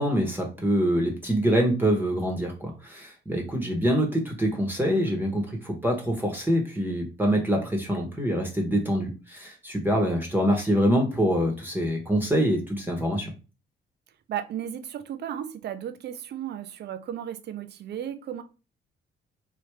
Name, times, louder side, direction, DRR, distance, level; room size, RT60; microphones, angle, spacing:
voice 1, 0.0-13.3, equal, 10° right, 0.9 m, -25 dB
voice 2, 14.3-18.4, right 10 dB, 55° right, 0.5 m, -34 dB
3.3 x 2.7 x 3.2 m
cardioid pair, 90°, 20 cm